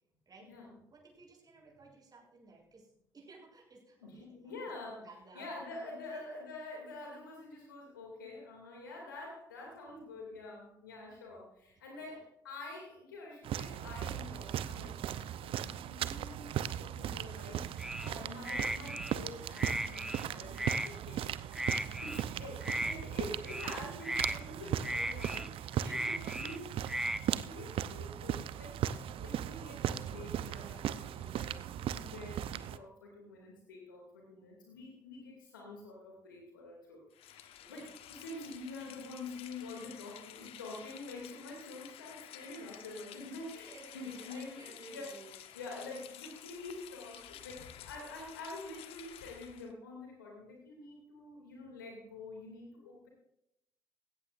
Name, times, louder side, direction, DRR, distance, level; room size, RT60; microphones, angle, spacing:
voice 1, 0.9-4.5 5.0-6.2 12.0-12.2 18.0-18.5 22.1-22.5 22.8-23.3 25.6-26.4 31.8-32.2 37.6-37.9 43.6-45.4, right 3 dB, 40° right, -1 dB, 7.0 m, -56 dB
voice 2, 4.0-5.1 5.3-26.7 27.3-31.6 32.0-44.6 44.9-45.1 45.5-53.1, left 2 dB, 90° left, -1 dB, 2.5 m, -47 dB
sound 1, 13.4-32.8, right 10 dB, 60° right, 0.6 m, -38 dB
sound 2, 17.8-18.1 18.4-19.2 19.6-20.2 20.6-20.9 21.5-22.2 22.6-22.9 23.4-23.8 24.0-24.4 24.8-25.5 25.8-26.6 26.9-27.2, right 1 dB, 5° right, 0.7 m, -36 dB
Rain, 37.1-49.7, left 11 dB, 65° left, 1.1 m, -52 dB
18.5 x 16.5 x 2.5 m, 0.79 s
hypercardioid pair, 45°, 11 cm